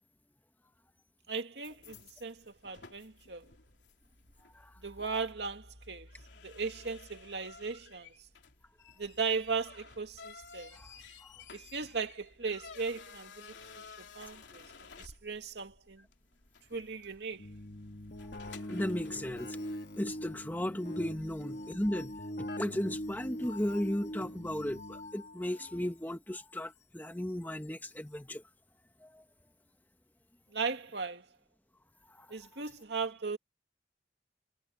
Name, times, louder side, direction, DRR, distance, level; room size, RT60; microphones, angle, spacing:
voice 1, 1.3-3.5 4.8-6.1 6.4-8.1 9.0-10.8 11.5-13.5 14.0-14.7 15.0-16.0 16.7-17.5 30.5-31.2 32.3-33.4, right 5 dB, 75° right, 2.3 m, -37 dB
sound 1, 1.6-19.8, left 4 dB, 90° left, 3.3 m, -54 dB
Keyboard (musical), 17.4-25.3, left 2 dB, 60° left, 1.5 m, -47 dB
sound 2, 18.2-25.8 26.5-26.6 27.6-27.7, equal, 40° left, 6.3 m, -43 dB
voice 2, 18.7-19.6 20.0-22.1 22.4-28.4 29.0-29.2 32.2-32.3, left 1 dB, 10° left, 1.1 m, -35 dB
head